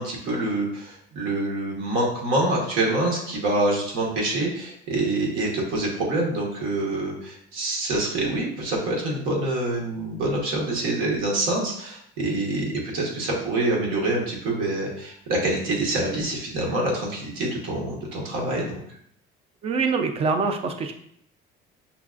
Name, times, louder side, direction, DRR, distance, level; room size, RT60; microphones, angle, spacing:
voice 1, 0.0-18.8, right 2 dB, 90° right, -2 dB, 1.2 m, -26 dB
voice 2, 19.6-20.9, right 4 dB, 30° right, 6 dB, 0.3 m, -25 dB
5.7 x 2.3 x 2.4 m, 0.69 s
cardioid pair, 170°, 20 cm